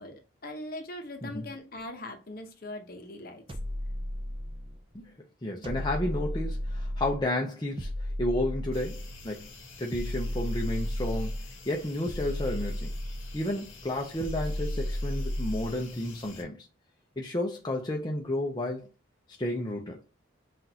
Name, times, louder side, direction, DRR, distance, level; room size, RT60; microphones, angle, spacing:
voice 1, 0.0-3.6, left 1 dB, 45° left, 0.8 m, -41 dB
sound 1, 3.5-4.8 5.6-7.3 7.8-9.2 9.9-11.5 12.1-13.5 14.2-15.8, equal, 25° right, 0.5 m, -33 dB
voice 2, 5.4-7.9 8.2-9.5 9.8-11.4 11.7-12.9 13.3-16.7 17.2-18.9 19.4-20.0, left 1 dB, 20° left, 0.6 m, -32 dB
sound 2, 8.7-16.4, left 3 dB, 80° left, 1.2 m, -48 dB
5.9 x 2.5 x 2.8 m
head